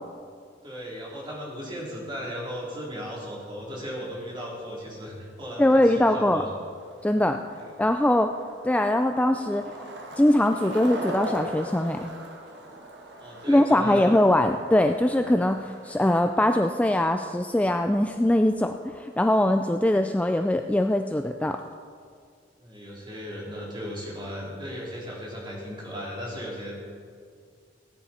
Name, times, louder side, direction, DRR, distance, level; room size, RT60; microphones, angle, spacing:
voice 1, 0.6-6.5 7.6-7.7 13.2-14.1 22.6-26.8, equal, 25° right, -4 dB, 3.5 m, -36 dB
Skateboard, 5.2-20.4, right 1 dB, 75° right, 1.7 m, -42 dB
voice 2, 5.6-6.4 7.0-7.4 7.8-8.3 8.6-9.6 10.2-12.1 13.5-21.6, left 1 dB, 10° left, 6 dB, 0.3 m, -22 dB
18.0 x 9.6 x 4.3 m, 2.1 s
head